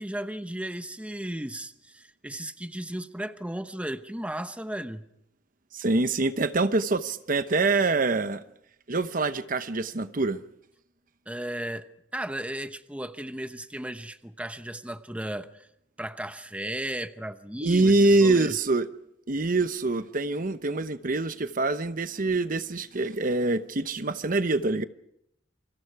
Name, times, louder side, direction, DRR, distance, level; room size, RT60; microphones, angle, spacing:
voice 1, 0.0-5.0 11.3-15.7 16.0-17.9 18.2-18.6, right 1 dB, 5° right, 0.9 m, -35 dB
voice 2, 5.7-8.4 8.9-10.4 17.6-18.9 19.3-24.8, right 2 dB, 50° right, 0.9 m, -25 dB
29.0 x 25.0 x 4.8 m
head